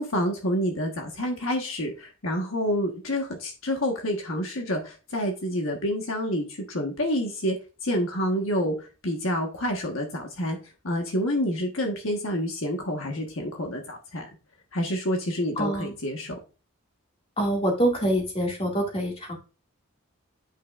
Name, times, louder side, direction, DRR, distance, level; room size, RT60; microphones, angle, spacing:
voice 1, 0.0-7.6 7.8-10.6 10.8-14.2 14.7-16.4, equal, 65° left, 2 dB, 1.4 m, -28 dB
voice 2, 15.6-15.9 17.4-19.4, right 1 dB, 25° left, 0 dB, 2.2 m, -25 dB
9.1 x 5.6 x 2.5 m, 0.32 s
head